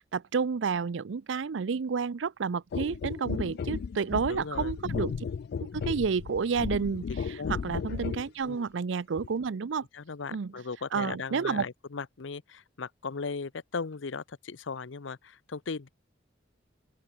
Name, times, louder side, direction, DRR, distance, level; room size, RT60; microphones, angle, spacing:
voice 1, 0.0-5.1 5.6-7.1 7.5-9.9 10.3-10.5 10.9-11.6, right 5 dB, 75° right, 0.5 m, -30 dB
sound 1, 2.7-8.3 9.2-9.3, left 6 dB, 55° left, 0.3 m, -34 dB
voice 2, 4.2-4.7 7.1-7.5 8.4-8.7 9.9-15.9, left 4 dB, 80° left, 0.7 m, -37 dB
open air
head